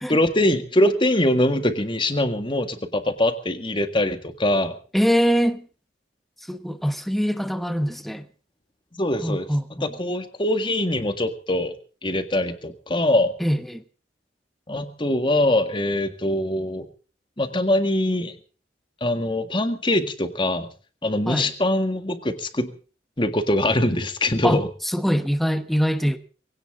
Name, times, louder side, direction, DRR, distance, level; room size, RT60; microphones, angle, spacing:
voice 1, 0.1-4.8 9.0-9.5 9.8-11.7 12.0-13.3 14.7-16.9 17.4-18.4 19.0-20.7 21.0-22.7 23.2-24.7, left 1 dB, 25° left, 1.9 m, -23 dB
voice 2, 4.9-5.7 6.4-8.3 9.2-9.9 13.4-13.8 21.3-21.5 24.4-26.2, equal, ahead, 1.1 m, -23 dB
21.0 x 17.5 x 3.8 m
head